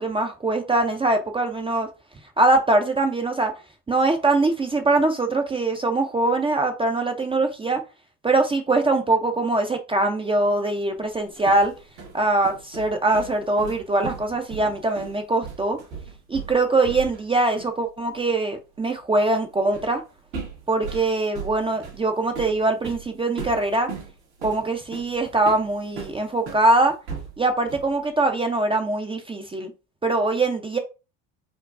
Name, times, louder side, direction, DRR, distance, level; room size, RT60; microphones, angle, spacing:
voice 1, 0.0-1.9 2.4-3.5 3.9-7.8 8.2-11.7 12.1-15.8 16.3-20.0 20.7-23.9 24.4-27.0 27.4-29.7 30.0-30.8, right 2 dB, 15° right, 0.4 m, -22 dB
sound 1, 11.1-17.3 17.6-17.8 19.7-20.0 20.3-26.7 27.1-28.0, right 5 dB, 80° right, 1.6 m, -37 dB
4.5 x 2.3 x 2.4 m
supercardioid pair, 85°, 37 cm